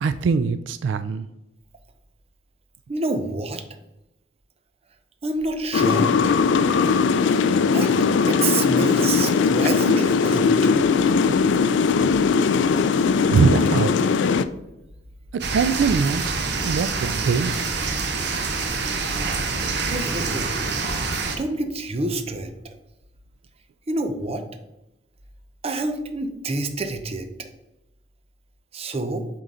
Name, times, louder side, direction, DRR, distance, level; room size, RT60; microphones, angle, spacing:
voice 1, 0.0-1.3 13.3-14.0 15.3-17.7, right 5 dB, 80° right, 0.3 m, -22 dB
voice 2, 2.9-3.6 5.2-6.1 7.7-7.9 8.3-10.7 19.8-20.5 21.4-22.5 23.9-24.4 25.6-27.5 28.7-29.3, right 2 dB, 35° right, 0.6 m, -27 dB
sound 1, 5.7-14.4, left 5 dB, 80° left, 0.4 m, -19 dB
sound 2, 15.4-21.4, right 4 dB, 65° right, 0.8 m, -26 dB
7.4 x 3.9 x 3.8 m
head